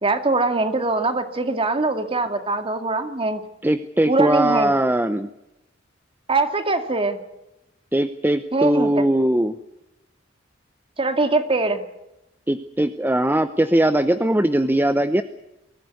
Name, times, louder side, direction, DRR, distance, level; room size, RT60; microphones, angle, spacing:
voice 1, 0.0-3.4 4.1-4.7 6.3-7.2 8.5-9.1 11.0-11.8, right 3 dB, 30° right, 7 dB, 2.2 m, -22 dB
voice 2, 3.6-5.3 7.9-9.6 12.5-15.2, right 1 dB, 10° right, 11 dB, 0.7 m, -20 dB
24.0 x 15.5 x 9.6 m, 0.90 s
head